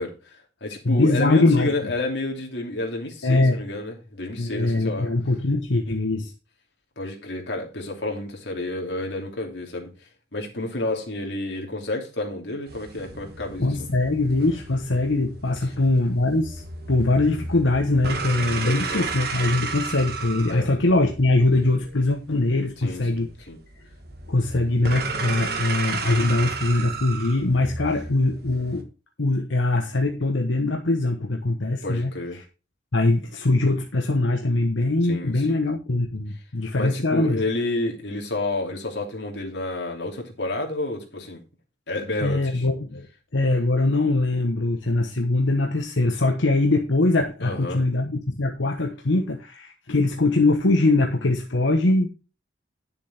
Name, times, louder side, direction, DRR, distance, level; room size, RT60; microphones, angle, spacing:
voice 1, 0.0-5.1 7.0-13.8 15.6-15.7 18.6-19.1 20.5-20.7 22.8-23.6 31.8-32.4 35.0-35.7 36.7-41.4 41.9-42.7 47.4-47.8, left 2 dB, 65° left, 1 dB, 3.0 m, -30 dB
voice 2, 0.8-1.7 3.2-3.6 4.4-6.3 13.6-16.6 16.9-23.3 24.3-28.9 29.2-32.1 32.9-37.4 42.2-43.1 43.3-52.1, left 2 dB, 90° left, 3 dB, 1.2 m, -22 dB
sound 1, 12.7-28.8, right 4 dB, 55° right, 1.6 m, -33 dB
10.0 x 7.0 x 4.4 m, 0.32 s
head